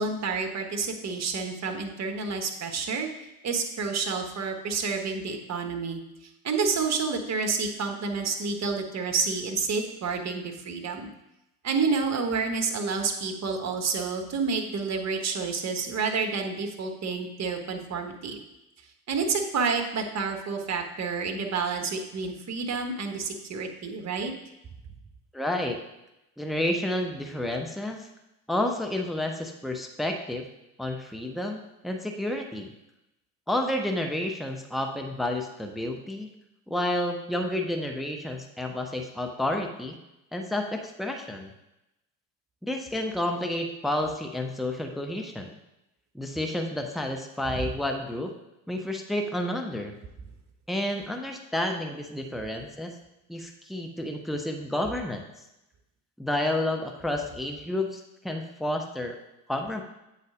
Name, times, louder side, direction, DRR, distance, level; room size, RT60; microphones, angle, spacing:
voice 1, 0.0-3.1 3.4-11.1 11.6-18.4 19.1-24.3 47.5-47.6, right 4 dB, 40° right, 4 dB, 1.4 m, -29 dB
voice 2, 25.3-25.8 26.4-28.1 28.5-30.5 30.8-32.7 33.5-36.3 36.7-40.0 40.3-41.5 42.6-45.5 46.1-48.3 48.7-49.9 50.7-52.9 53.3-55.2 56.2-59.2 59.5-59.8, left 1 dB, ahead, 3 dB, 0.9 m, -30 dB
8.0 x 4.2 x 5.0 m, 0.89 s
hypercardioid pair, 60°, 42 cm